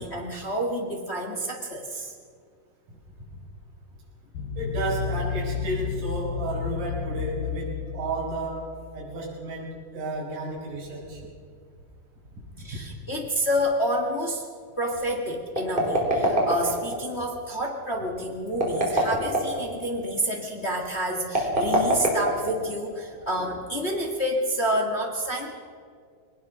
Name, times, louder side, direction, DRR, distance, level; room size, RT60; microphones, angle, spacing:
voice 1, 0.0-2.1 12.6-14.4 14.8-25.5, equal, 35° left, 1 dB, 1.0 m, -29 dB
voice 2, 2.9-3.4 4.5-11.3 12.6-12.8 21.7-21.8, right 2 dB, 55° right, -4 dB, 6.5 m, -33 dB
sound 1, 4.3-9.0, left 7 dB, 65° left, 3.1 m, -32 dB
sound 2, 15.6-17.0 18.5-19.6 21.3-22.8, right 1 dB, 15° right, 3.8 m, -23 dB
21.0 x 19.5 x 6.2 m, 2.1 s
omnidirectional pair, 4.5 m